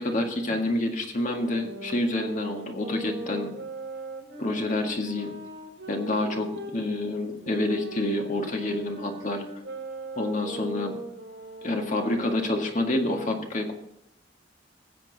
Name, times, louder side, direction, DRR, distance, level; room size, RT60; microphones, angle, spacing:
voice 1, 0.0-3.5 4.4-5.3 5.9-9.4 10.2-10.9 11.6-13.7, left 1 dB, 45° left, 2 dB, 1.9 m, -28 dB
sound 1, 1.3-6.8 7.4-12.6, right 2 dB, 65° right, 4.6 m, -40 dB
20.0 x 7.5 x 4.1 m, 0.80 s
head